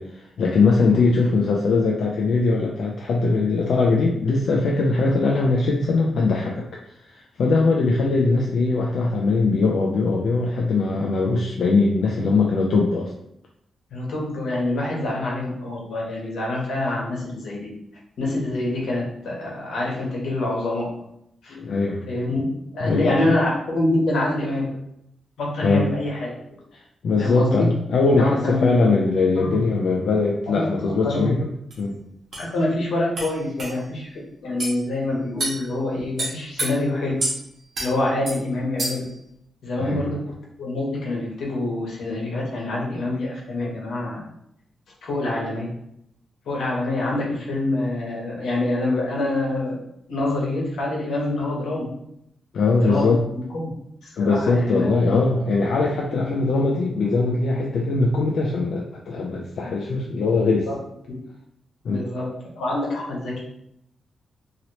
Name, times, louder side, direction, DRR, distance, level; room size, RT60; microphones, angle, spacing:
voice 1, 0.0-6.6 7.1-13.1 21.5-22.0 22.8-23.2 25.6-25.9 27.0-31.5 31.8-32.0 39.8-40.0 52.5-53.2 54.2-60.7 61.8-62.0, left 3 dB, 65° left, -1 dB, 0.4 m, -21 dB
voice 2, 13.9-17.7 18.2-20.9 21.4-21.6 22.1-22.5 22.7-24.7 25.4-26.3 27.2-27.7 28.0-28.9 29.3-29.6 30.5-31.2 32.4-37.2 37.8-39.0 39.6-40.3 40.6-44.2 45.0-45.7 46.4-49.8 50.1-51.9 52.8-53.7 54.0-55.2 56.1-56.4 60.7-60.8 61.1-61.2 61.9-62.3 62.6-63.4, left 2 dB, 90° left, -3 dB, 1.1 m, -26 dB
sound 1, 31.7-31.8 32.3-32.5 33.2-33.3 33.6-33.7 34.6-34.8 35.4-35.6 36.2-36.7 37.2-37.4 37.7-37.9 38.3-38.4 38.8-39.1, right 1 dB, 45° right, 1.1 m, -27 dB
3.0 x 2.8 x 2.8 m, 0.77 s
wide cardioid pair, 175°, 0 cm